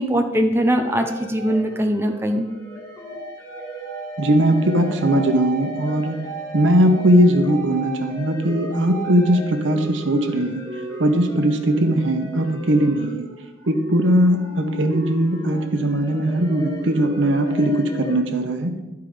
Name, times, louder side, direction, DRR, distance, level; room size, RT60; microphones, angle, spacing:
voice 1, 0.0-2.5, equal, 15° right, 4 dB, 0.6 m, -21 dB
sound 1, 0.8-18.2, right 2 dB, 15° left, 2.0 m, -35 dB
voice 2, 4.2-6.2 6.5-10.6 11.0-13.3 13.7-18.7, right 1 dB, 80° right, 6 dB, 0.9 m, -19 dB
11.0 x 4.7 x 5.0 m, 1.1 s
head